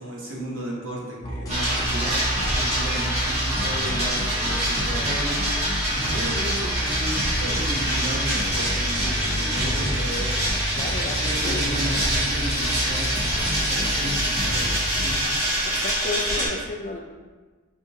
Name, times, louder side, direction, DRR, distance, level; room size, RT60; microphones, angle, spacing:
voice 1, 0.0-2.2 2.5-5.4 5.8-10.6 11.0-14.7 14.9-15.2, equal, 75° right, -4 dB, 1.1 m, -34 dB
sound 1, 1.2-15.1, equal, 15° left, 0.8 m, -30 dB
sound 2, 1.5-16.5, right 1 dB, 30° right, 1.3 m, -25 dB
voice 2, 10.8-11.2 11.4-11.6 15.1-17.0, left 3 dB, 40° left, 1 dB, 0.4 m, -33 dB
5.1 x 3.7 x 2.7 m, 1.3 s
head